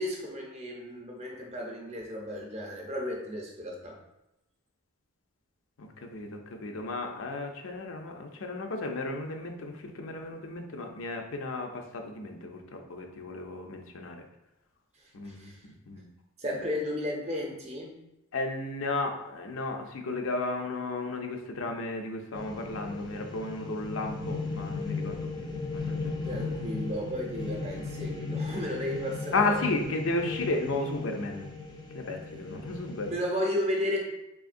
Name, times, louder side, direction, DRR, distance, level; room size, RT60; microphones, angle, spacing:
voice 1, 0.0-4.0 14.9-15.7 16.4-18.0 26.3-29.7 33.0-34.0, left 1 dB, 30° right, 0 dB, 0.6 m, -34 dB
voice 2, 5.8-14.3 15.1-15.5 15.9-16.1 18.3-25.2 25.7-26.0 29.3-31.5 31.9-33.1, left 2 dB, 70° left, 3 dB, 0.5 m, -33 dB
sound 1, 22.3-33.1, left 3 dB, 20° left, 0.4 m, -36 dB
3.6 x 3.5 x 2.5 m, 0.91 s
head